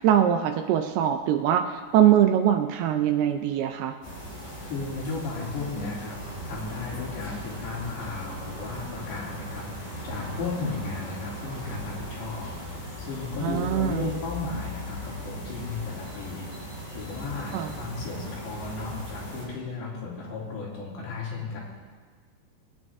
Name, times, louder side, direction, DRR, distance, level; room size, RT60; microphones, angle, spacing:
voice 1, 0.0-3.9 13.4-14.1 17.5-17.7, right 10 dB, 80° right, 6 dB, 2.4 m, -22 dB
sound 1, 4.0-19.4, left 1 dB, 40° left, 5.1 m, -38 dB
voice 2, 4.6-6.2 6.5-16.5 16.9-21.6, left 3 dB, 80° left, -5 dB, 5.2 m, -35 dB
22.0 x 9.7 x 3.6 m, 1.5 s
omnidirectional pair, 5.0 m